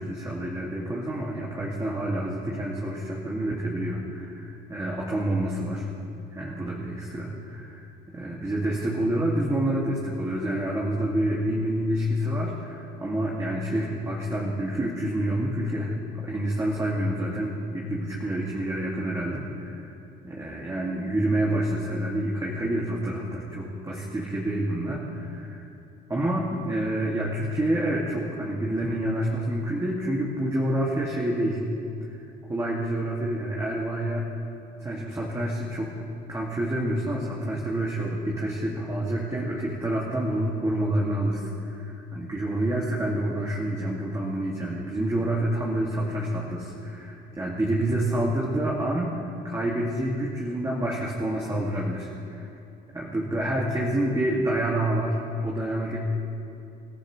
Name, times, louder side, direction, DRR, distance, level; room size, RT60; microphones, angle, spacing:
voice 1, 0.0-5.9 6.3-19.9 20.2-25.7 26.1-31.6 32.0-32.2 32.5-34.3 34.8-35.9 36.3-52.5 52.9-56.0, right 1 dB, 20° right, -4 dB, 2.5 m, -28 dB
29.0 x 13.5 x 3.3 m, 2.7 s
cardioid pair, 110°, 17 cm